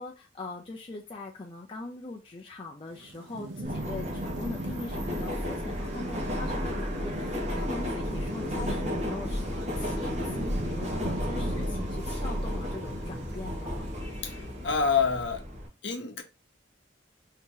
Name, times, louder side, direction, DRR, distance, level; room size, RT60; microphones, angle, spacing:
voice 1, 0.0-13.9, left 2 dB, 25° left, 0.4 m, -41 dB
Thunderstorm / Rain, 2.9-15.1, right 2 dB, 65° right, 0.7 m, -41 dB
Subway metro underground, 3.6-15.7, equal, 35° right, 1.0 m, -33 dB
voice 2, 14.2-15.4 15.8-16.2, left 5 dB, 65° left, 0.8 m, -27 dB
2.9 x 2.8 x 3.7 m
head